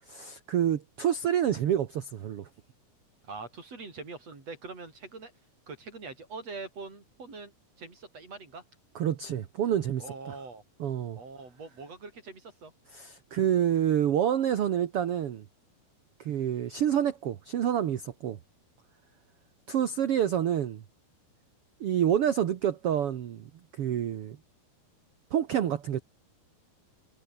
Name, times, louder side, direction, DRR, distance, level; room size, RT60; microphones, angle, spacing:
voice 1, 0.1-2.5 8.9-10.3 10.8-11.2 12.9-15.4 16.2-18.4 19.7-20.8 21.8-24.4 25.3-26.0, right 10 dB, 65° right, 1.4 m, -28 dB
voice 2, 3.2-5.3 5.7-7.5 7.8-8.6 10.0-10.6 11.2-12.7, right 4 dB, 40° right, 7.6 m, -43 dB
omnidirectional pair, 4.4 m